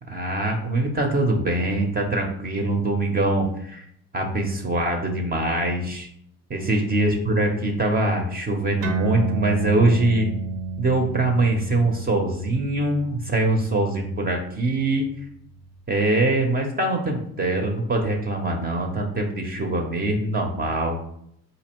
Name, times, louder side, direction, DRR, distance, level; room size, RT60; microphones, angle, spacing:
voice 1, 0.1-3.8 4.1-6.1 6.5-10.3 10.8-15.1 15.9-21.0, right 2 dB, 25° right, 2 dB, 0.6 m, -23 dB
sound 1, 8.8-15.7, right 4 dB, 85° right, 0.8 m, -32 dB
4.2 x 2.7 x 2.9 m, 0.70 s
supercardioid pair, 95°, 36 cm